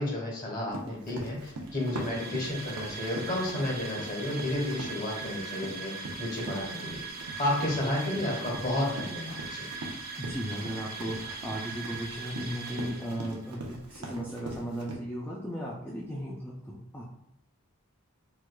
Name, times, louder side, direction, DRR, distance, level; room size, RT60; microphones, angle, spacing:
voice 1, 0.0-7.0 7.4-9.7, left 1 dB, 35° left, -4 dB, 1.1 m, -32 dB
Run, 0.7-15.0, right 2 dB, 90° right, 0.6 m, -42 dB
sound 1, 1.7-13.5, right 4 dB, 45° right, 0.6 m, -40 dB
voice 2, 10.2-17.0, equal, 10° left, -5 dB, 0.4 m, -36 dB
4.5 x 2.4 x 2.2 m, 0.78 s
head